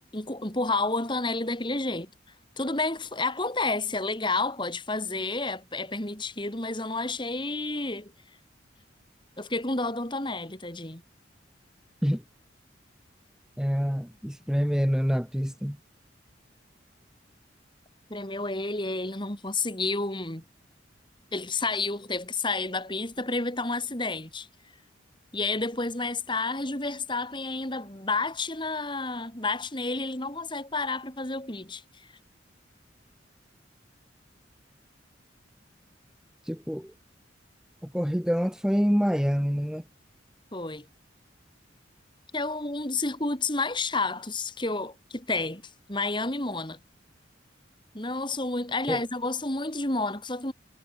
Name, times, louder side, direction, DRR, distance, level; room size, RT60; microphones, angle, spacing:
voice 1, 0.1-2.1 2.6-8.1 9.4-11.0 18.1-20.4 21.3-24.5 25.3-31.8 40.5-40.9 42.3-45.6 45.9-46.8 47.9-50.5, left 3 dB, 25° left, 3.6 m, -30 dB
voice 2, 13.6-15.8 36.5-36.9 37.8-39.8 48.9-49.0, equal, 5° right, 2.8 m, -26 dB
head